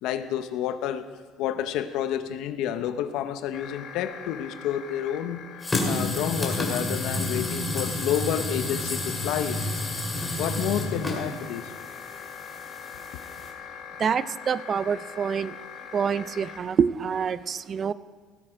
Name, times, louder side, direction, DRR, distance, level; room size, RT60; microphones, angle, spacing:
voice 1, 0.0-1.1 1.4-5.5 5.9-9.7 10.4-11.7, left 10 dB, 70° left, 11 dB, 0.7 m, -29 dB
sound 1, 3.5-16.6, left 7 dB, 55° left, 1.5 m, -42 dB
sound 2, 5.6-13.5, left 2 dB, 15° left, 2.2 m, -30 dB
voice 2, 14.0-15.6 15.9-17.9, right 7 dB, 35° right, 16 dB, 0.4 m, -26 dB
17.0 x 7.8 x 5.0 m, 1.5 s
cardioid pair, 130°, 0 cm